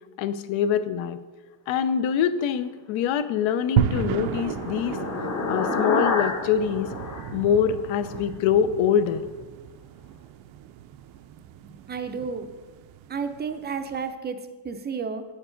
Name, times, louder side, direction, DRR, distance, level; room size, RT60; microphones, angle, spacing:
voice 1, 0.2-1.2 1.7-5.0 5.5-6.9 7.3-9.2, left 8 dB, 70° left, 12 dB, 0.7 m, -24 dB
sound 1, 3.4-8.2, left 3 dB, 35° left, 1.0 m, -30 dB
sound 2, 3.8-14.0, right 10 dB, 70° right, 0.5 m, -33 dB
voice 2, 11.6-12.5 13.1-15.3, right 5 dB, 20° right, 9 dB, 0.5 m, -32 dB
9.2 x 7.2 x 3.8 m, 1.3 s
cardioid pair, 145°, 49 cm